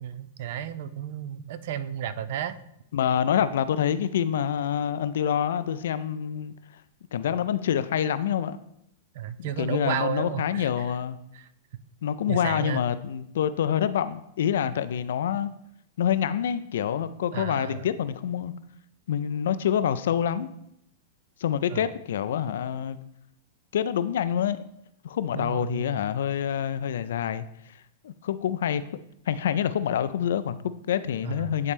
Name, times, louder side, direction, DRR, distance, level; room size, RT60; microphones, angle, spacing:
voice 1, 0.0-2.6 9.1-10.9 11.3-11.5 12.3-12.8 17.3-17.9 21.7-21.9 25.3-26.0 31.2-31.6, right 10 dB, 55° right, 14 dB, 0.5 m, -33 dB
voice 2, 2.9-6.5 7.1-8.6 9.4-11.2 12.0-15.5 16.0-18.5 19.1-20.5 21.4-23.0 23.7-24.6 25.0-27.5 28.0-28.8 29.3-31.7, left 9 dB, 65° left, 14 dB, 0.4 m, -26 dB
9.6 x 4.2 x 3.4 m, 0.78 s
figure-of-eight pair, 100°, 0 cm